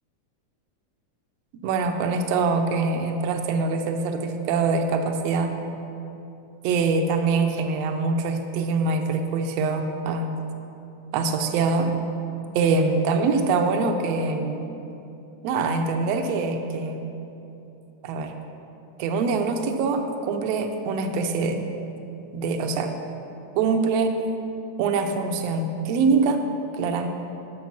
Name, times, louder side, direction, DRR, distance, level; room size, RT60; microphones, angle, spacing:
voice 1, 1.6-5.5 6.6-10.4 11.1-11.9 12.5-14.7 15.4-17.0 18.0-18.3 19.0-21.6 22.3-22.9 23.5-24.1 24.8-26.4 26.7-27.1, right 4 dB, 75° right, 6 dB, 1.5 m, -24 dB
10.5 x 6.5 x 5.9 m, 2.9 s
omnidirectional pair, 3.6 m